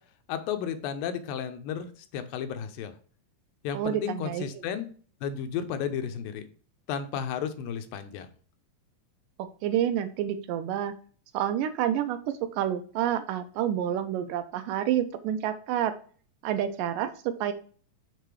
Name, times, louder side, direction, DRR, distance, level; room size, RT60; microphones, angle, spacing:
voice 1, 0.3-2.9 3.6-4.9 5.2-6.5 6.9-8.3, left 8 dB, 80° left, 9 dB, 2.4 m, -33 dB
voice 2, 3.7-4.5 9.4-10.9 11.3-15.9 16.4-17.5, right 10 dB, 80° right, 9 dB, 2.1 m, -29 dB
6.8 x 3.7 x 4.6 m, 0.42 s
omnidirectional pair, 4.1 m